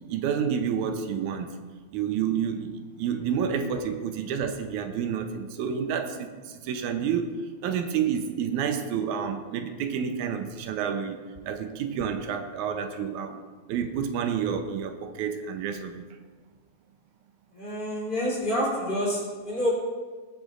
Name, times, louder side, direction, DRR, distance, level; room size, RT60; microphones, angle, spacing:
voice 1, 0.0-1.5 1.9-13.4 13.7-16.0, right 7 dB, 90° right, 7 dB, 2.2 m, -29 dB
voice 2, 17.5-19.7, equal, 15° left, -5 dB, 3.4 m, -28 dB
19.5 x 9.1 x 2.5 m, 1.5 s
omnidirectional pair, 3.3 m